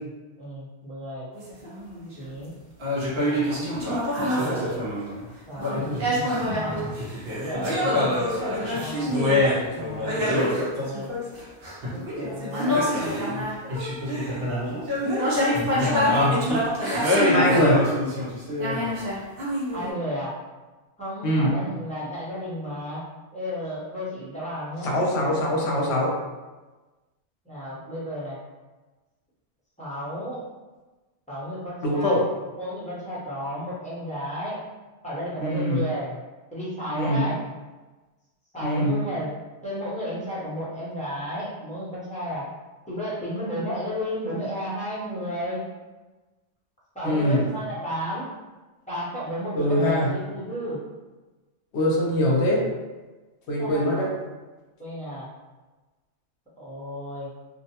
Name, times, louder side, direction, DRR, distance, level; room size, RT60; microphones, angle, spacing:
voice 1, 0.4-1.3 2.2-2.6 3.3-3.8 4.3-4.8 5.5-6.0 6.3-6.9 7.6-8.2 8.7-9.1 9.7-10.2 10.7-11.1 11.9-12.8 15.3-15.4 19.7-20.3 21.0-23.0 23.3-25.0 27.4-28.4 29.8-30.4 31.3-32.2 32.5-34.6 35.0-36.1 36.5-37.4 38.5-39.3 39.6-42.5 42.9-45.7 46.9-48.3 48.9-50.8 53.6-54.1 54.8-55.3 56.6-57.3, equal, 5° left, -11 dB, 0.7 m, -33 dB
sound 1, 1.4-2.2 2.8-5.3 5.6-19.9, left 1 dB, 60° right, 0.9 m, -25 dB
voice 2, 17.3-17.8 21.2-21.5 24.8-26.1 31.8-32.2 35.4-35.8 36.9-37.2 38.6-38.9 47.0-47.4 49.5-50.1 51.7-52.6 53.5-54.1, equal, 70° left, -2 dB, 0.9 m, -22 dB
2.5 x 2.1 x 2.8 m, 1.2 s
omnidirectional pair, 1.2 m